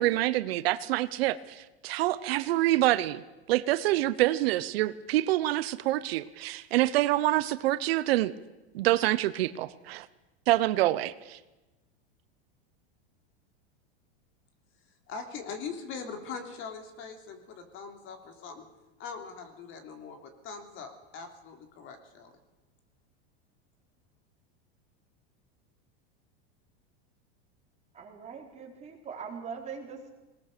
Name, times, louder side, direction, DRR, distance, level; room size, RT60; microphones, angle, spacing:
voice 1, 0.0-3.2 3.5-8.3 8.7-10.1 10.5-11.4, right 16 dB, 75° right, 15 dB, 0.9 m, -26 dB
voice 2, 15.1-18.6 19.0-22.3, left 5 dB, 40° left, 5 dB, 3.4 m, -41 dB
voice 3, 27.9-30.1, right 6 dB, 20° right, 0 dB, 4.3 m, -41 dB
21.0 x 19.0 x 6.8 m, 1.1 s
supercardioid pair, 140°, 31 cm